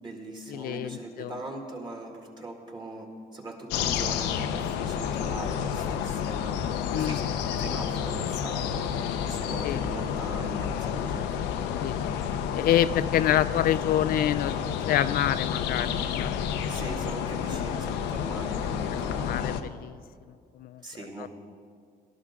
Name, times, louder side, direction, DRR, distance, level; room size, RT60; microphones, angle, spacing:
voice 1, 0.0-6.6 6.9-11.4 16.7-19.4 20.8-21.3, right 2 dB, 25° right, 2 dB, 2.2 m, -40 dB
voice 2, 0.5-1.3 6.9-7.2 9.6-9.8 11.8-12.0 12.5-16.3 19.2-20.0 20.6-20.8, left 11 dB, 60° left, 14 dB, 0.4 m, -27 dB
sound 1, 3.7-19.6, left 8 dB, 90° left, 0.7 m, -30 dB
18.5 x 12.0 x 3.7 m, 2.1 s
cardioid pair, 110°, 17 cm